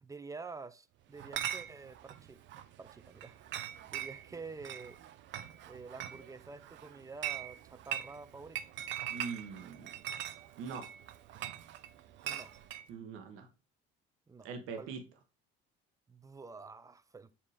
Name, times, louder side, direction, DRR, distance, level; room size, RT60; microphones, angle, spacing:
voice 1, 0.0-2.4 2.8-3.4 3.9-5.0 5.7-8.7 12.2-12.5 14.3-14.9 16.1-17.3, right 4 dB, 15° right, 0.6 m, -48 dB
Chatter / Chink clink, 1.2-12.9, right 11 dB, 60° right, 0.6 m, -42 dB
voice 2, 9.1-9.9 10.6-10.8 12.9-13.5 14.4-15.0, right 5 dB, 75° right, 1.3 m, -42 dB
7.4 x 2.9 x 4.9 m
supercardioid pair, 90°, 21 cm